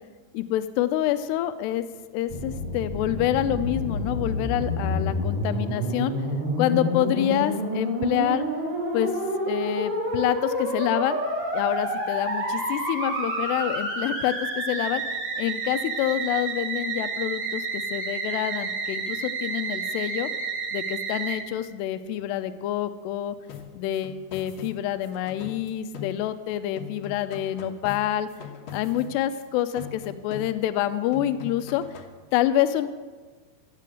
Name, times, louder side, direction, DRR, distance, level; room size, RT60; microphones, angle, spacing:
voice 1, 0.3-1.8 2.1-6.1 6.6-8.5 8.9-9.1 9.5-11.2 11.5-15.0 15.4-20.3 20.7-23.4 23.7-28.3 28.7-31.8 32.3-32.9, left 12 dB, 85° left, 11 dB, 2.7 m, -27 dB
Musical instrument, 2.3-21.4, right 1 dB, 35° right, 4.5 m, -29 dB
sound 1, 23.5-26.5 26.8-29.5 29.8-30.8 31.1-32.2, left 8 dB, 60° left, 1.8 m, -41 dB
17.0 x 7.6 x 7.8 m, 1.4 s
omnidirectional pair, 4.8 m